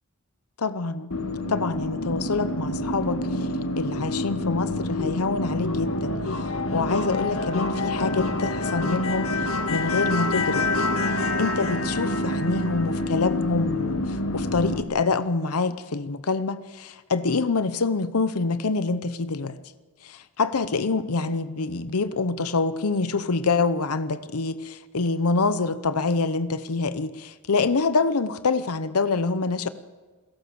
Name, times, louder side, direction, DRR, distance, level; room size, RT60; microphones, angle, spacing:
voice 1, 0.6-1.1 1.5-3.4 3.8-10.7 11.1-19.6 20.0-29.7, left 3 dB, 90° left, 0.9 m, -26 dB
sound 1, 1.1-14.8, left 2 dB, 70° left, 1.8 m, -27 dB
28.0 x 17.5 x 7.0 m
head